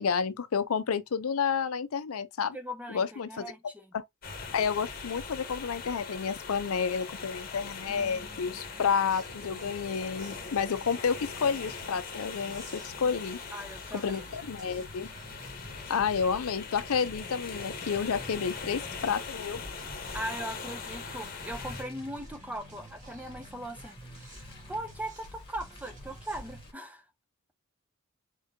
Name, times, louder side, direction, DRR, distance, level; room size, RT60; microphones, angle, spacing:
voice 1, 0.0-2.6 2.9-3.4 3.9-4.0 4.5-13.4 13.9-15.1 15.9-19.6, left 6 dB, 80° left, 0.5 m, -30 dB
voice 2, 2.5-3.9 7.9-8.8 13.5-14.3 20.1-27.1, right 1 dB, 5° right, 0.6 m, -40 dB
sound 1, 4.2-21.8, left 5 dB, 45° left, 1.0 m, -41 dB
sound 2, 9.1-26.7, right 1 dB, 35° right, 1.4 m, -51 dB
Car, 18.6-26.7, left 2 dB, 25° left, 1.3 m, -52 dB
4.5 x 3.6 x 2.7 m
head